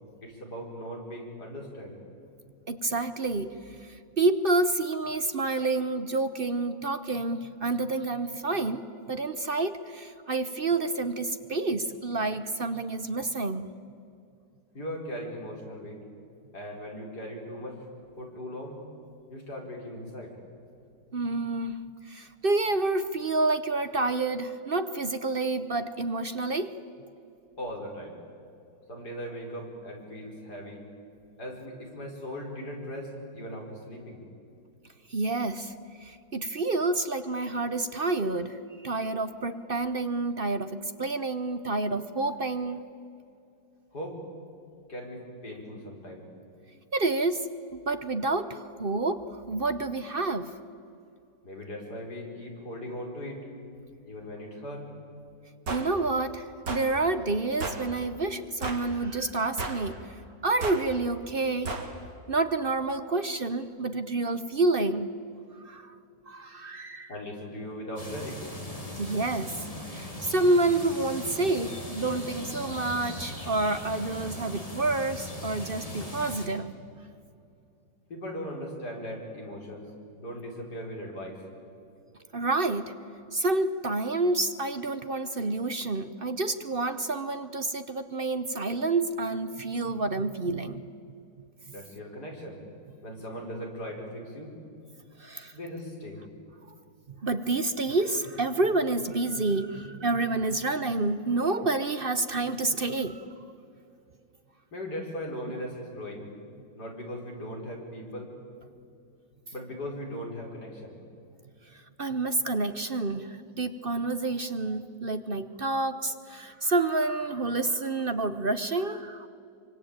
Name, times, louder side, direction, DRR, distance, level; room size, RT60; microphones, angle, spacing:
voice 1, 0.2-2.0 14.7-16.0 16.5-17.8 18.2-18.8 19.3-20.4 27.6-28.2 28.9-30.8 31.4-34.2 43.9-44.2 44.9-46.3 51.4-53.4 54.0-54.9 67.1-68.4 78.1-79.9 80.2-81.4 91.7-92.6 93.0-94.5 95.5-96.2 104.7-106.3 106.7-108.3 109.5-111.0, equal, 60° left, 0 dB, 5.6 m, -38 dB
voice 2, 2.7-13.8 21.1-26.7 35.1-42.8 46.9-50.5 55.7-60.0 60.4-61.7 62.3-65.1 65.6-66.0 66.3-67.1 69.0-69.7 69.9-76.7 82.3-82.9 83.3-90.8 95.2-95.5 97.2-103.3 111.7-119.3, right 2 dB, 45° right, 10 dB, 0.8 m, -29 dB
sound 1, 55.7-55.9 56.7-56.9 57.6-57.8 58.6-58.9 59.6-59.9 60.6-60.8 61.6-61.9, right 3 dB, 70° right, 3.2 m, -33 dB
sound 2, 68.0-76.5, left 1 dB, 20° left, 3.6 m, -39 dB
25.0 x 24.5 x 8.9 m, 2.6 s
omnidirectional pair, 1.9 m